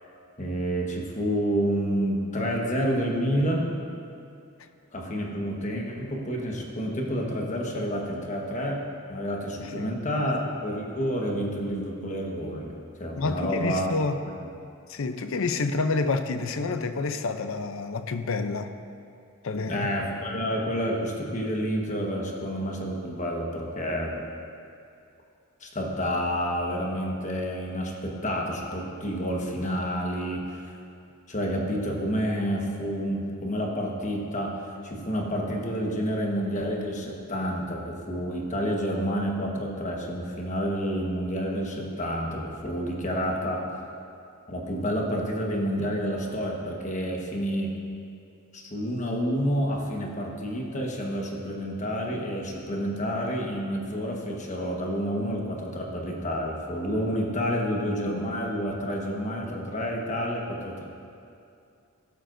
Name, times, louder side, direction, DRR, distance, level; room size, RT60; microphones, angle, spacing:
voice 1, 0.4-3.7 4.9-8.8 9.1-12.7 13.0-13.9 14.3-14.4 19.7-24.2 25.6-30.6 31.3-34.6 34.8-43.6 44.5-47.7 48.5-60.8, equal, 35° left, -1 dB, 1.3 m, -29 dB
voice 2, 13.2-14.2 14.9-18.7 19.4-19.9, left 3 dB, 60° left, 9 dB, 0.6 m, -28 dB
14.5 x 12.5 x 2.6 m, 2.5 s
head